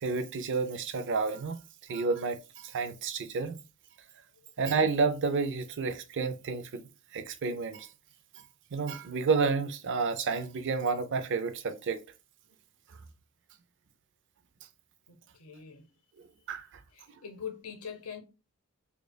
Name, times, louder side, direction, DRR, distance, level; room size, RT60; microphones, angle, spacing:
voice 1, 0.0-1.6 1.9-3.6 4.6-6.8 7.1-7.9 8.7-12.0 16.5-16.6, right 4 dB, 55° right, 0.5 m, -30 dB
voice 2, 15.1-15.9 16.9-18.2, left 7 dB, 75° left, 0.8 m, -43 dB
4.9 x 2.4 x 2.2 m
head